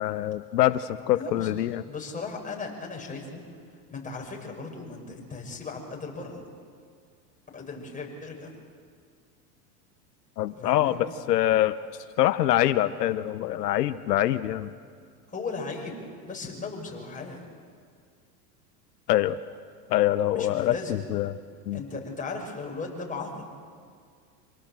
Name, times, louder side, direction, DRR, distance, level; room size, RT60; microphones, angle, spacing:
voice 1, 0.0-1.8 10.4-11.7 12.2-14.7 19.1-19.4 19.9-21.4 21.7-21.8, left 13 dB, 85° left, 12 dB, 0.9 m, -24 dB
voice 2, 1.1-1.5 1.9-3.4 3.9-6.4 7.5-8.5 10.5-11.0 15.3-16.0 16.2-17.4 20.3-21.0 21.7-23.4, left 4 dB, 15° left, 0 dB, 6.3 m, -37 dB
27.0 x 18.5 x 7.6 m, 2.1 s
hypercardioid pair, 100°, 47 cm